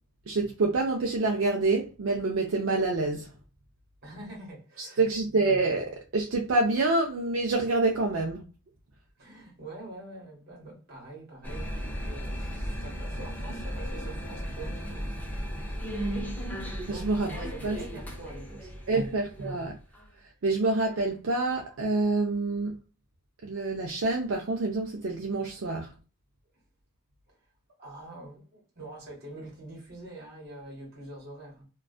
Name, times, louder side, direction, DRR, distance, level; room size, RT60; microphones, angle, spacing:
voice 1, 0.3-3.3 4.8-8.4 16.9-17.8 18.9-19.8 20.4-22.8 23.4-25.9, right 3 dB, 65° right, 0.4 m, -27 dB
voice 2, 4.0-5.1 9.2-15.1 16.9-19.1 27.8-31.6, right 2 dB, 45° right, 1.3 m, -45 dB
sound 1, 11.4-20.1, equal, 5° left, 0.5 m, -35 dB
2.4 x 2.3 x 2.3 m
head